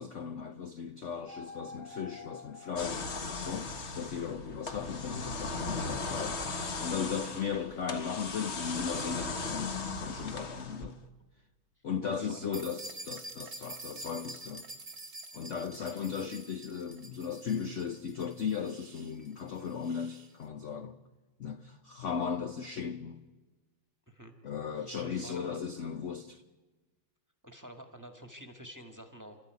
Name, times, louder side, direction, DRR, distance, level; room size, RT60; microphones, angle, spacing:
voice 1, 0.0-3.1 3.4-6.4 6.8-11.0 11.8-14.6 15.3-21.0 21.4-23.2 24.4-26.4, left 6 dB, 60° left, 0.8 m, -37 dB
sound 1, 1.3-3.9 5.1-6.4, left 4 dB, 80° left, 2.6 m, -50 dB
sound 2, 2.8-11.0, left 3 dB, 35° left, 1.4 m, -37 dB
voice 2, 12.0-12.6 15.8-16.1 24.1-24.3 24.7-25.6 27.4-29.4, equal, 10° right, 1.5 m, -49 dB
sound 3, 12.5-20.3, right 2 dB, 30° right, 1.4 m, -47 dB
29.0 x 13.5 x 9.4 m
omnidirectional pair, 2.3 m